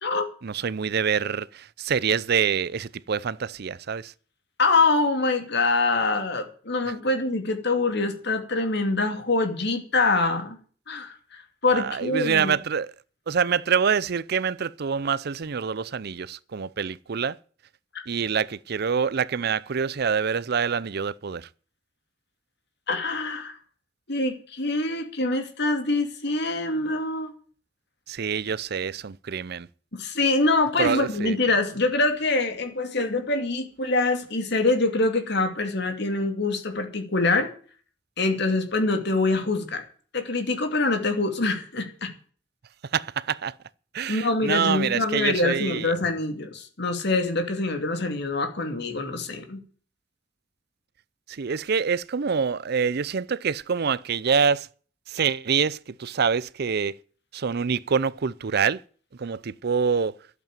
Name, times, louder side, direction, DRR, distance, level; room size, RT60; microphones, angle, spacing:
voice 1, 0.4-4.1 11.7-12.9 13.3-17.4 18.1-21.5 28.1-29.7 30.8-31.4 42.9-43.5 43.9-45.9 51.3-54.7 55.1-57.0 57.3-58.8 59.2-60.1, right 6 dB, 60° right, 0.5 m, -26 dB
voice 2, 4.6-10.6 10.9-12.6 17.9-18.0 22.9-23.6 24.1-27.3 29.9-37.5 38.2-39.8 40.1-42.1 44.1-49.6, left 3 dB, 60° left, 2.6 m, -25 dB
12.0 x 8.3 x 9.1 m
head